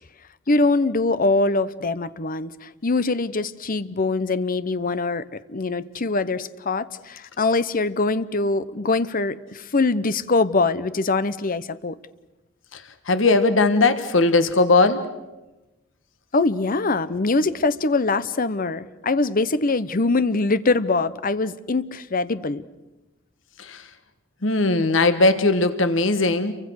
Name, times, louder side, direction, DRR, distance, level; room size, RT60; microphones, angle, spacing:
voice 1, 0.5-12.0 16.3-22.6, left 3 dB, 45° left, 14 dB, 0.9 m, -23 dB
voice 2, 12.7-15.0 23.6-23.9 24.4-26.5, left 3 dB, 70° left, 10 dB, 1.5 m, -19 dB
29.0 x 24.0 x 6.4 m, 1.0 s
head